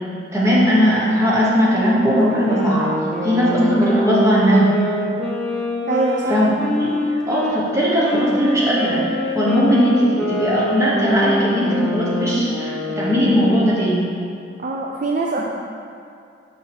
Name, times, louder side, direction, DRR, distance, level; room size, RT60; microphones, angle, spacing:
voice 1, 0.3-3.0 3.2-4.7 6.3-6.5 6.8-7.0 7.3-9.1 9.3-14.1, equal, 15° right, -7 dB, 1.3 m, -18 dB
sound 1, 2.3-7.5 8.0-13.6, left 1 dB, 5° left, 0.8 m, -24 dB
voice 2, 5.9-6.4 14.6-15.4, right 3 dB, 45° right, -1 dB, 0.4 m, -23 dB
6.5 x 5.8 x 3.5 m, 2.5 s
head